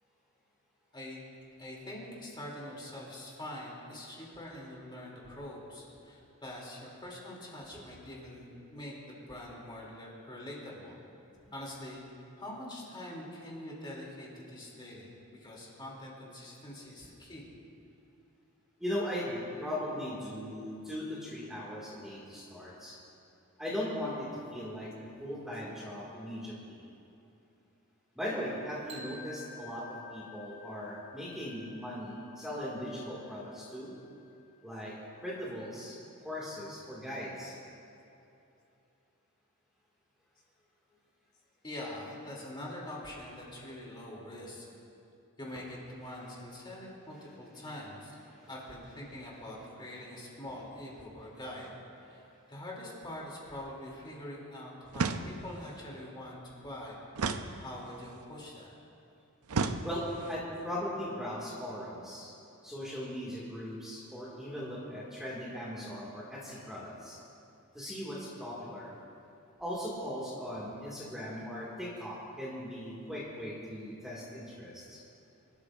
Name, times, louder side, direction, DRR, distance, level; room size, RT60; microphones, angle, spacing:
voice 1, 1.6-11.0 11.5-12.0 12.4-17.5 41.6-44.7 45.4-48.2 48.5-51.7 52.1-56.4 56.6-57.0 57.6-58.7, left 1 dB, 20° left, -4 dB, 2.9 m, -44 dB
voice 2, 18.8-23.0 23.6-26.8 28.2-29.8 30.1-33.9 34.6-34.9 35.2-37.5 48.3-48.5 59.8-62.3 62.6-67.2 67.7-68.9 69.6-75.0, equal, ahead, -7 dB, 2.1 m, -39 dB
sound 1, 28.9-34.8, left 3 dB, 30° right, 1.4 m, -51 dB
sound 2, 54.9-55.7 57.2-58.1 59.5-60.4, right 4 dB, 70° right, 0.6 m, -34 dB
25.0 x 13.0 x 2.6 m, 2.8 s
head